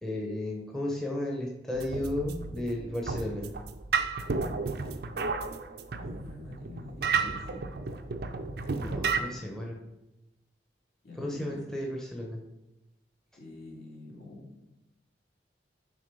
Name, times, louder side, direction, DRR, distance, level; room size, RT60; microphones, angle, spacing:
voice 1, 0.0-3.5 8.8-9.8 11.2-12.4, left 1 dB, 5° left, -2 dB, 0.8 m, -34 dB
sound 1, 1.7-9.2, right 4 dB, 60° right, 0.5 m, -32 dB
voice 2, 5.9-7.7 8.9-9.5 11.0-11.6 13.4-14.6, left 2 dB, 65° left, -3 dB, 2.3 m, -46 dB
6.4 x 3.9 x 5.3 m, 0.95 s
head